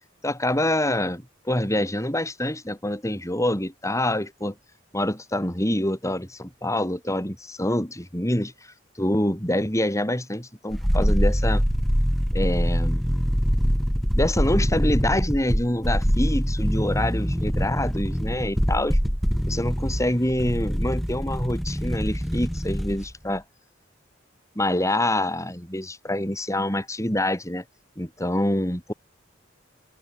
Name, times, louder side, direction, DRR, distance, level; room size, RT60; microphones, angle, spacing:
voice 1, 0.2-4.5 4.9-8.5 9.0-11.6 12.3-13.1 14.1-19.0 19.5-23.4 24.6-27.6 28.0-28.9, left 1 dB, 15° left, 6.9 m, -26 dB
sound 1, 10.7-23.1 23.4-23.5, equal, ahead, 4.7 m, -24 dB
open air
head